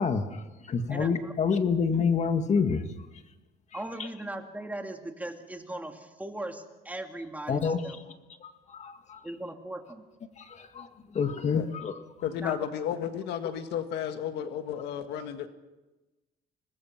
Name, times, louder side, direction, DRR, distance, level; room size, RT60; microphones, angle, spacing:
voice 1, 0.0-2.8 7.5-7.8 8.4-9.2 10.4-12.0, left 5 dB, 40° left, 8 dB, 2.0 m, -28 dB
voice 2, 0.9-1.3 1.7-1.8 3.7-8.0 9.2-10.0 12.4-12.7, right 1 dB, 10° right, 4 dB, 2.4 m, -39 dB
voice 3, 12.2-15.5, left 9 dB, 80° left, 8 dB, 1.8 m, -33 dB
26.0 x 20.0 x 6.0 m, 1.1 s
cardioid pair, 110°, 17 cm